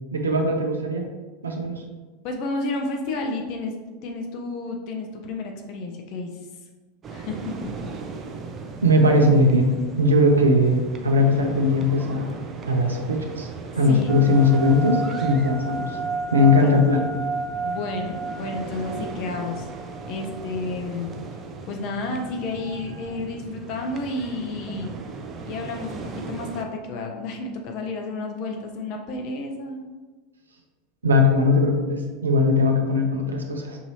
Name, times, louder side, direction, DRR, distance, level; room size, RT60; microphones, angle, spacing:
voice 1, 0.1-1.0 1.4-1.8 8.8-12.4 12.7-13.5 13.8-15.8 16.3-17.1 31.0-33.8, left 2 dB, 85° right, 3 dB, 0.6 m, -19 dB
voice 2, 2.2-3.7 4.0-6.3 7.1-7.7 13.9-14.1 16.4-16.9 17.6-19.7 20.1-21.1 21.7-24.9 25.4-29.8, left 3 dB, 55° left, 3 dB, 0.8 m, -31 dB
sound 1, 7.0-26.6, right 4 dB, 30° right, 0.5 m, -38 dB
sound 2, 14.1-20.7, right 4 dB, 10° left, 1.3 m, -32 dB
5.8 x 2.7 x 3.0 m, 1.3 s
hypercardioid pair, 85°, 0 cm